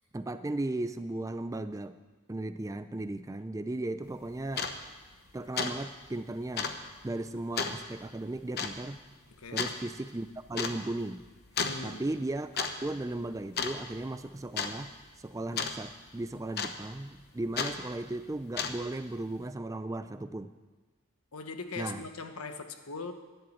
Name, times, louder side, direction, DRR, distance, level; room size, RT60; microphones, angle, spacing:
voice 1, 0.1-2.0 2.3-4.7 5.3-6.7 7.0-9.0 9.5-11.3 11.8-14.9 15.2-20.5 21.8-22.0, right 2 dB, 15° right, 11 dB, 0.3 m, -36 dB
sound 1, 4.1-4.2 4.5-4.8 5.1-5.3 5.6-5.8 6.0-6.1 6.6-6.8 7.6-7.8 8.6-8.8 9.6-9.8 10.6-10.8 11.6-11.8 12.4-12.7 13.0-13.3 13.6-14.1 14.6-14.7 15.6-15.8 16.6-17.0 17.6-17.8 18.4-18.9, left 5 dB, 45° left, 0.9 m, -32 dB
voice 2, 9.4-9.7 11.6-12.1 21.3-23.1, left 4 dB, 80° left, 8 dB, 1.2 m, -40 dB
11.5 x 10.5 x 8.5 m, 1.3 s
head